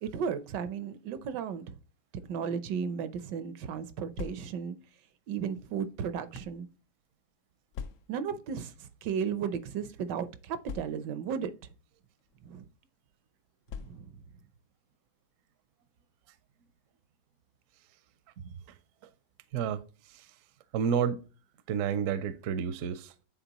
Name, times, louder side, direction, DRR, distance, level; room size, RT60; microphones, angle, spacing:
voice 1, 0.0-1.7 2.3-4.8 5.3-6.7 8.1-11.5 12.4-12.6 13.8-14.1, right 7 dB, 85° right, 1.4 m, -34 dB
sound 1, 4.1-4.8 5.6-6.6 7.7-8.3 9.2-9.4 9.6-9.7 10.6-11.3 12.2-12.4 13.7-14.3, left 6 dB, 75° left, 0.7 m, -43 dB
voice 2, 19.5-19.8 20.1-20.3 20.7-21.2 21.7-23.2, right 7 dB, 65° right, 0.8 m, -30 dB
9.1 x 4.1 x 2.9 m
omnidirectional pair, 1.8 m